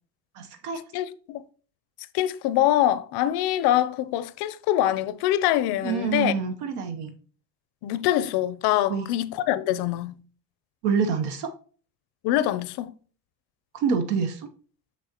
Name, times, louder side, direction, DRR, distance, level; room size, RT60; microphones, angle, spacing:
voice 1, 0.3-0.8 5.8-7.1 8.9-9.1 10.8-11.5 13.7-14.5, right 6 dB, 85° right, 0.9 m, -26 dB
voice 2, 0.9-1.4 2.1-6.3 7.8-10.1 12.2-12.9, left 13 dB, 70° left, 0.6 m, -24 dB
6.2 x 6.1 x 2.9 m
cardioid pair, 165°, 40 cm